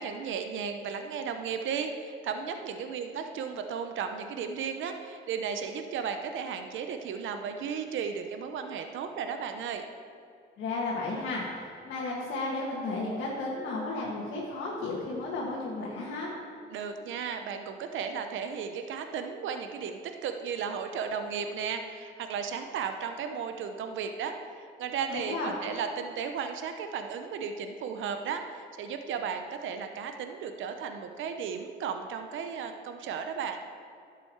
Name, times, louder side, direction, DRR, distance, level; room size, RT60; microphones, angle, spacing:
voice 1, 0.0-9.8 16.7-33.6, right 6 dB, 75° right, 6 dB, 0.8 m, -35 dB
voice 2, 10.6-16.3 25.1-25.5, left 2 dB, 80° left, -5 dB, 1.8 m, -33 dB
11.5 x 7.5 x 4.6 m, 2.4 s
cardioid pair, 90°, 20 cm